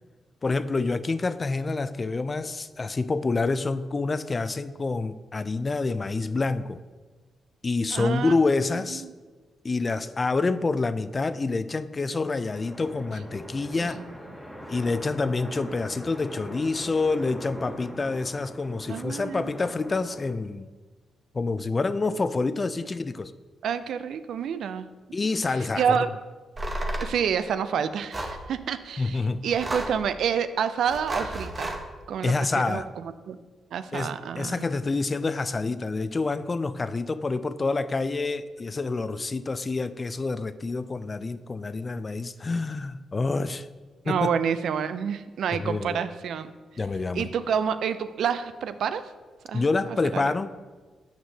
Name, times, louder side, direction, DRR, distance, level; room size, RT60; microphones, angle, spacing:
voice 1, 0.4-6.8 7.6-9.0 9.6-14.0 14.7-20.7 21.3-23.3 25.1-26.0 29.0-29.4 32.2-32.9 33.9-43.7 44.1-44.3 45.6-46.0 46.8-47.3 49.5-50.5, left 3 dB, 35° left, 14 dB, 0.3 m, -27 dB
voice 2, 7.9-8.4 8.9-9.1 13.8-14.1 18.9-19.5 23.6-24.9 25.5-26.1 27.0-31.7 32.1-33.4 33.7-34.7 44.0-46.5 47.1-49.1 49.5-50.3, right 7 dB, 75° right, 12 dB, 0.3 m, -28 dB
sound 1, 12.5-20.3, equal, ahead, 1.4 m, -41 dB
sound 2, 26.6-27.1 28.1-28.4 29.5-30.0 30.8-31.8, right 1 dB, 30° right, 0.9 m, -32 dB
7.4 x 5.8 x 2.7 m, 1.4 s
cardioid pair, 60°, 0 cm